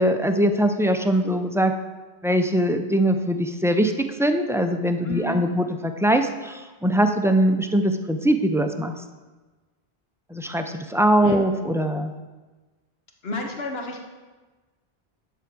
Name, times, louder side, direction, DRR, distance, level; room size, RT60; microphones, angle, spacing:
voice 1, 0.0-1.7 2.2-8.9 10.3-12.1, right 1 dB, 5° right, 6 dB, 0.3 m, -22 dB
voice 2, 5.0-5.6 11.2-11.4 13.2-14.0, left 1 dB, 75° left, 2 dB, 1.6 m, -32 dB
10.5 x 4.7 x 7.7 m, 1.3 s
omnidirectional pair, 1.0 m